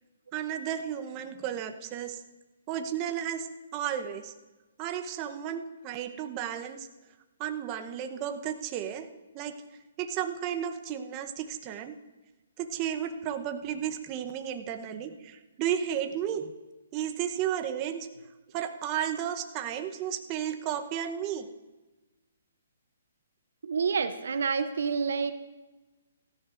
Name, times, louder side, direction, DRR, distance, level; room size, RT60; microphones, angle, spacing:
voice 1, 0.3-2.2 2.7-3.5 3.7-4.3 4.8-6.9 7.4-9.1 9.3-9.6 10.0-12.0 12.6-16.5 16.9-18.1 18.5-21.5, right 9 dB, 30° right, 7 dB, 0.9 m, -33 dB
voice 2, 23.6-25.3, right 5 dB, 70° right, 11 dB, 0.8 m, -28 dB
16.5 x 14.0 x 2.6 m, 1.1 s
hypercardioid pair, 140°, 0 cm